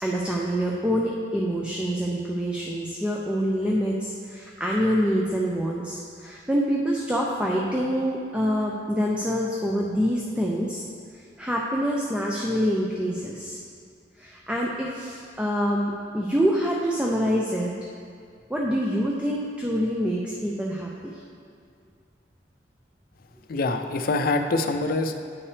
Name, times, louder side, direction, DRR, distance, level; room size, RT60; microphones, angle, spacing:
voice 1, 0.0-10.8 11.4-13.6 14.2-17.7 18.5-21.1, equal, 5° right, -3 dB, 0.5 m, -26 dB
voice 2, 23.5-25.2, left 2 dB, 55° left, 6 dB, 0.5 m, -25 dB
9.4 x 5.7 x 3.3 m, 2.3 s
head